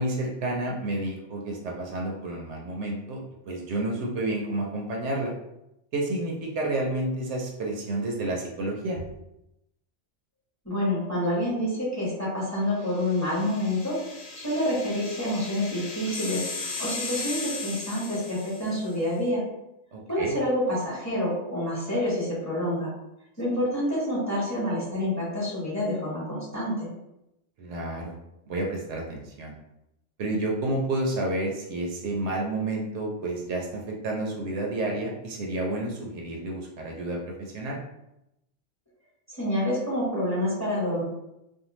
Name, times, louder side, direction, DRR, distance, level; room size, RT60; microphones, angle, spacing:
voice 1, 0.0-3.2 3.5-5.3 5.9-9.0 19.9-20.3 27.6-28.2 28.5-29.5 30.2-37.8, right 2 dB, 75° right, -1 dB, 0.8 m, -30 dB
voice 2, 10.6-14.0 14.3-19.4 20.1-22.9 23.4-26.9 39.3-41.0, left 1 dB, 15° left, -8 dB, 0.9 m, -28 dB
sound 1, 13.0-18.9, left 3 dB, 70° left, 0.9 m, -37 dB
2.6 x 2.2 x 2.9 m, 0.87 s
omnidirectional pair, 1.2 m